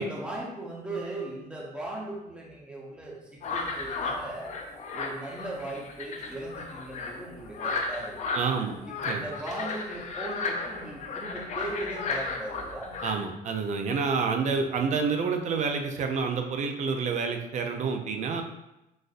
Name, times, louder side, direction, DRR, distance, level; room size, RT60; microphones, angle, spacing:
voice 1, 0.0-4.5 4.9-8.5 8.8-12.9 14.7-14.8, right 1 dB, 5° right, -3 dB, 0.8 m, -38 dB
sound 1, 3.4-13.1, left 3 dB, 45° left, 0.5 m, -34 dB
voice 2, 8.3-8.8 9.1-9.2 13.0-18.4, right 5 dB, 45° right, 4 dB, 0.5 m, -28 dB
4.0 x 2.5 x 2.4 m, 0.92 s
cardioid pair, 110°, 17 cm